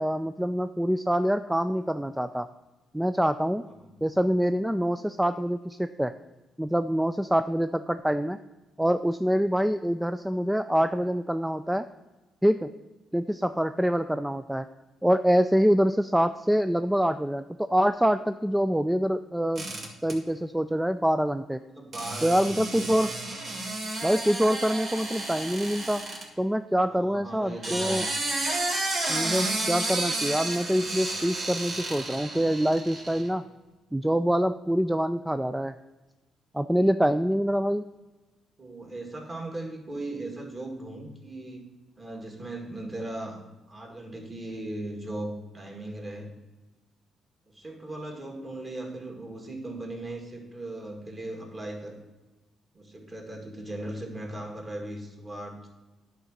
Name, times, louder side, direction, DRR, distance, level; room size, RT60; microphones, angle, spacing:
voice 1, 0.0-2.5 2.9-3.6 4.0-6.1 6.6-8.4 8.8-11.9 12.4-12.7 13.1-14.7 15.0-19.7 20.0-21.6 22.2-23.1 24.0-26.0 26.4-28.0 29.1-33.4 33.9-35.7 36.5-37.8, equal, 5° right, 10 dB, 0.3 m, -25 dB
sound 1, 19.6-20.1 21.9-26.2 27.4-33.3, right 2 dB, 50° right, 2.0 m, -32 dB
voice 2, 21.7-22.9 26.9-28.0 38.6-41.7 42.0-43.4 43.7-46.3 47.5-52.0 52.7-55.7, right 1 dB, 25° right, 1 dB, 2.2 m, -38 dB
10.5 x 3.7 x 6.6 m, 1.1 s
cardioid pair, 90°, 0 cm